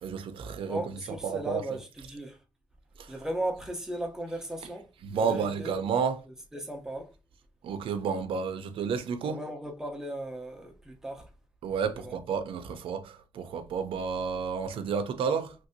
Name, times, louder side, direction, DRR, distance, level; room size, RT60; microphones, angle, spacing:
voice 1, 0.0-0.9 1.2-1.6 3.0-3.1 5.0-6.2 7.6-9.4 11.6-15.5, right 6 dB, 80° right, 0.5 m, -31 dB
voice 2, 0.7-2.4 3.1-5.7 6.5-7.1 9.2-11.3 12.0-12.1, right 1 dB, 5° right, 0.7 m, -37 dB
3.2 x 2.6 x 2.6 m
cardioid pair, 125°, 9 cm